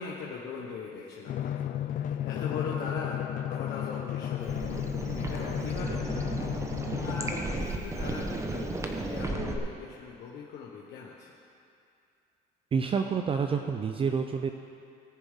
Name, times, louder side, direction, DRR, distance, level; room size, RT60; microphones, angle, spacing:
voice 1, 0.0-3.2 3.4-4.8 5.1-6.2 7.0-11.4, left 5 dB, 80° left, -3 dB, 1.2 m, -40 dB
Drum, 1.3-7.4, left 11 dB, 50° left, 0.4 m, -33 dB
sound 1, 4.4-9.6, right 2 dB, 15° right, 1.0 m, -34 dB
voice 2, 12.7-14.5, right 6 dB, 30° right, 5 dB, 0.5 m, -28 dB
19.0 x 6.9 x 3.7 m, 2.4 s
cardioid pair, 110°, 17 cm